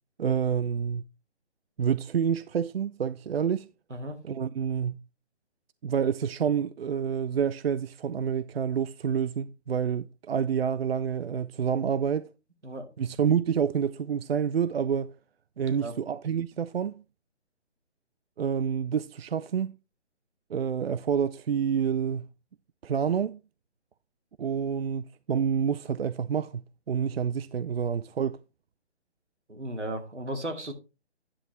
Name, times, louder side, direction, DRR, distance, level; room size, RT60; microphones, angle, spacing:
voice 1, 0.2-1.0 1.8-3.7 4.2-5.0 5.8-12.3 13.0-15.1 15.6-17.0 18.4-19.8 20.5-22.3 22.8-23.4 24.4-28.4, right 7 dB, 60° right, 0.5 m, -28 dB
voice 2, 29.5-30.7, right 1 dB, 90° right, 2.1 m, -35 dB
9.9 x 8.1 x 3.0 m
figure-of-eight pair, 145°, 34 cm